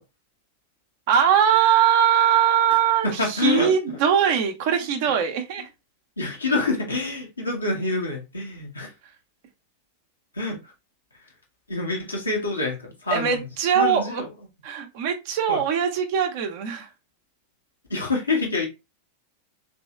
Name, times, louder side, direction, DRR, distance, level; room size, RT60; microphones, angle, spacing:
voice 1, 1.1-5.7 13.1-14.2 14.6-16.9, right 8 dB, 50° right, 0.8 m, -21 dB
voice 2, 3.0-4.0 5.1-5.2 6.2-8.9 10.3-10.7 11.7-13.4 13.7-14.3 15.5-15.6 17.9-18.7, left 3 dB, 80° left, 1.2 m, -26 dB
3.4 x 3.1 x 2.9 m
figure-of-eight pair, 90°, 0 cm